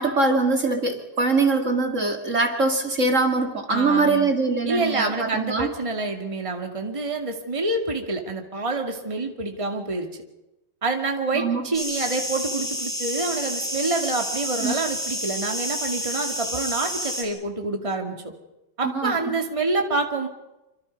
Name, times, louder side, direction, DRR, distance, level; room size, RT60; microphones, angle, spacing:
voice 1, 0.0-5.7 11.3-11.6 14.6-14.7 18.8-19.1, right 3 dB, 40° right, 4 dB, 2.7 m, -22 dB
voice 2, 3.7-4.3 4.6-10.1 10.8-18.2 18.8-20.3, right 3 dB, 15° right, 3 dB, 2.3 m, -27 dB
sound 1, 11.7-17.2, equal, ahead, 4.8 m, -29 dB
27.0 x 26.0 x 5.4 m, 0.95 s
omnidirectional pair, 2.0 m